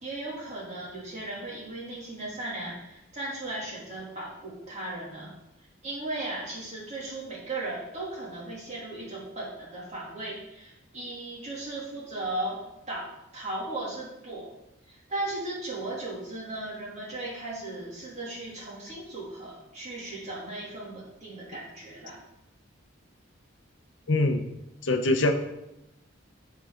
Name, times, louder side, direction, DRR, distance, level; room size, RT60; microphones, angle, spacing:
voice 1, 0.0-5.3 5.6-12.6 12.9-14.5 14.9-22.2, right 2 dB, 35° right, -4 dB, 2.7 m, -36 dB
voice 2, 24.1-24.4 24.8-25.3, left 2 dB, 60° left, 6 dB, 0.8 m, -23 dB
13.5 x 4.7 x 3.8 m, 0.90 s
head